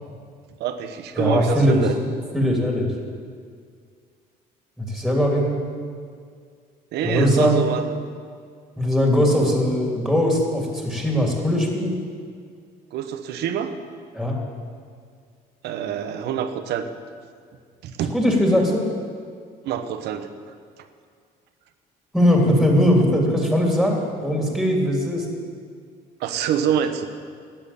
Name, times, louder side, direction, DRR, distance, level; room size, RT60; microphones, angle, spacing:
voice 1, 0.6-2.0 6.9-8.0 12.9-13.7 15.6-16.9 17.8-18.2 19.6-20.3 26.2-27.1, right 9 dB, 80° right, 9 dB, 1.1 m, -26 dB
voice 2, 1.2-1.8 2.3-2.9 4.8-5.6 7.0-7.7 8.8-11.9 14.1-14.4 18.1-18.8 22.1-25.2, equal, ahead, 0 dB, 2.9 m, -20 dB
12.5 x 8.9 x 8.6 m, 2.1 s
cardioid pair, 110°, 17 cm